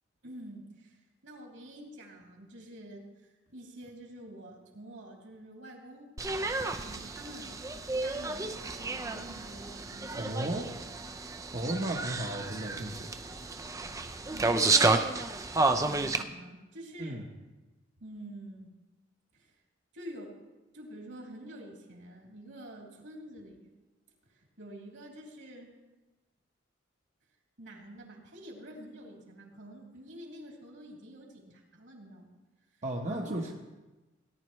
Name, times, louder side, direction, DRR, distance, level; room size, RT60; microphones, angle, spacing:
voice 1, 0.2-6.1 6.8-10.5 14.3-15.1 15.7-17.2 18.0-18.7 19.3-19.5 19.9-20.4 20.7-23.7 24.3-25.7 27.6-32.4 33.1-33.5, right 1 dB, 75° right, -2 dB, 3.1 m, -48 dB
sound 1, 6.2-16.2, right 3 dB, 15° right, 0.5 m, -31 dB
voice 2, 10.1-10.6 11.5-13.1 17.0-17.2 32.8-33.5, right 1 dB, 35° right, -1 dB, 0.9 m, -34 dB
18.0 x 10.5 x 3.1 m, 1.1 s
head